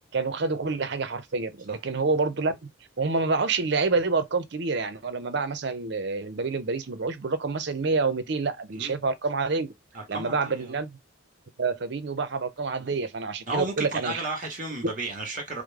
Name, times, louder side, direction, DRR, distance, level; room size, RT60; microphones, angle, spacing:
voice 1, 0.1-2.7 3.0-9.7 10.1-11.0 11.6-14.2, right 4 dB, 55° right, 0.6 m, -27 dB
voice 2, 9.9-10.7 12.8-12.9 13.5-15.6, right 2 dB, 40° right, 1.5 m, -33 dB
4.9 x 2.0 x 3.5 m
head